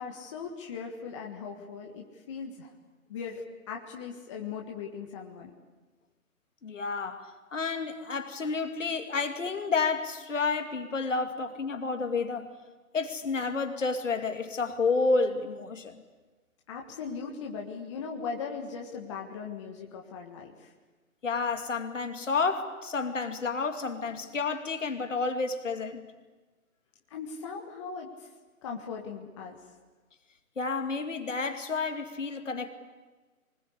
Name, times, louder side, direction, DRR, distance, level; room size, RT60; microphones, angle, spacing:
voice 1, 0.0-2.7 3.1-3.4 3.7-5.5 16.7-20.7 27.1-28.3 28.6-29.6, left 5 dB, 20° left, 1 dB, 1.5 m, -39 dB
voice 2, 6.6-12.5 12.9-16.0 21.2-26.0 30.6-32.7, left 4 dB, 60° left, 6 dB, 2.5 m, -30 dB
24.5 x 20.0 x 8.4 m, 1.3 s
figure-of-eight pair, 155°, 43 cm